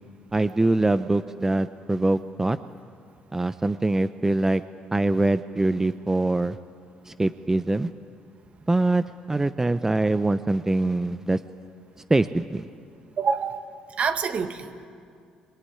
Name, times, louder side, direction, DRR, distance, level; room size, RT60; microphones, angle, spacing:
voice 1, 0.3-2.6 3.3-4.6 4.9-6.6 7.1-7.9 8.7-11.4 12.1-12.6, right 2 dB, 15° right, 12 dB, 0.8 m, -23 dB
voice 2, 13.2-13.6 14.0-14.9, right 6 dB, 50° right, 8 dB, 2.1 m, -26 dB
25.5 x 22.0 x 9.9 m, 2.4 s
supercardioid pair, 70°, 3 cm